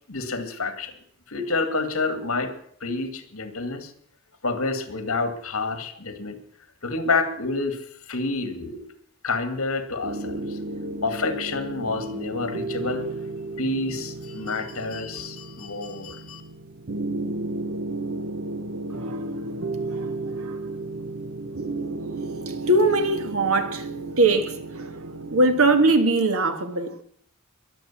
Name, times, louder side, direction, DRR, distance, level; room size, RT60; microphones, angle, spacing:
voice 1, 0.1-0.9 1.3-2.5 2.8-3.9 4.4-6.4 6.8-8.9 9.2-10.6 11.0-13.1 13.6-16.4, left 3 dB, 80° left, 2.2 m, -28 dB
sound 1, 10.0-26.0, right 2 dB, 60° right, 0.9 m, -33 dB
voice 2, 22.5-23.9 24.2-24.9 25.3-26.9, right 2 dB, 80° right, 1.7 m, -21 dB
21.5 x 7.9 x 7.3 m
head